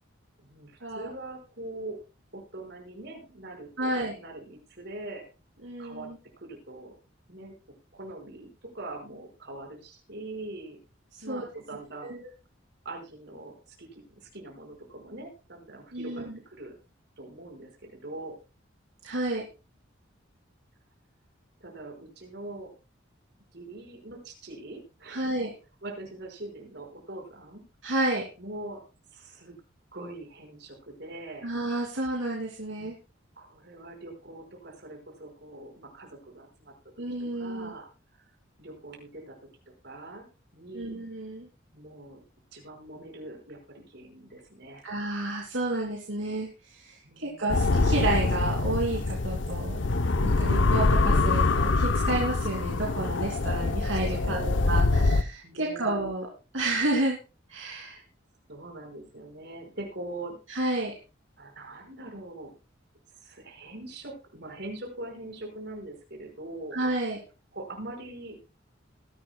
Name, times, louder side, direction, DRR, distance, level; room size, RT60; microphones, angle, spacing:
voice 1, 0.4-2.0 2.3-5.2 5.8-6.1 6.4-6.9 7.3-7.5 7.9-10.8 11.2-12.2 12.9-16.7 17.2-18.4 21.6-22.7 23.5-25.2 25.8-27.6 28.4-28.8 29.1-29.6 29.9-31.5 32.7-32.8 33.4-36.7 37.3-37.9 38.2-38.3 38.6-39.4 39.7-40.3 40.5-40.9 41.7-42.2 42.5-44.8 47.0-47.8 54.1-55.1 55.4-56.0 57.9-58.0 58.5-60.4 61.4-62.5 63.2-66.8 67.5-68.4, right 2 dB, 60° right, 1 dB, 5.3 m, -42 dB
voice 2, 3.8-4.1 5.6-6.1 11.3-11.5 12.1-12.3 15.9-16.4 19.0-19.4 25.1-25.5 27.8-28.2 31.4-32.9 37.0-37.7 40.7-41.5 44.8-49.8 50.2-54.4 54.7-56.3 56.5-57.2 57.5-58.0 60.5-60.9 66.7-67.2, right 2 dB, 75° right, -2 dB, 2.8 m, -30 dB
sound 1, 47.5-55.2, left 3 dB, 65° left, 0.7 m, -24 dB
20.0 x 11.0 x 2.3 m, 0.32 s
head